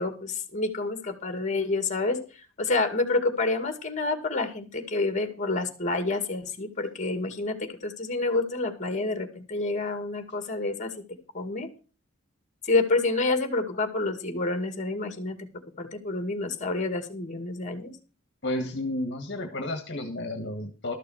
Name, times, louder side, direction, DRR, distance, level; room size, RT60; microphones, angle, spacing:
voice 1, 0.0-2.2 2.6-10.9 11.3-11.7 12.6-15.5 15.8-17.9, left 3 dB, 35° left, 7 dB, 2.2 m, -28 dB
voice 2, 18.4-20.9, left 1 dB, 55° left, 6 dB, 1.7 m, -32 dB
13.0 x 6.7 x 6.4 m, 0.35 s
head